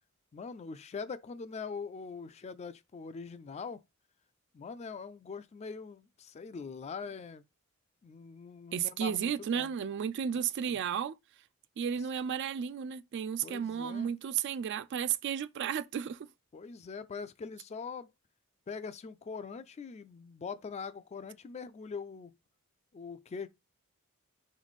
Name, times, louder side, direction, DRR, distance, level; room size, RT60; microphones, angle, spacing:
voice 1, 0.3-3.8 4.5-7.5 8.0-9.7 10.3-10.8 13.4-14.1 16.5-18.1 18.7-22.3 22.9-23.5, left 5 dB, 30° left, 0.3 m, -43 dB
voice 2, 8.7-11.1 11.8-16.2, right 8 dB, 55° right, 0.3 m, -33 dB
3.8 x 3.1 x 4.0 m
head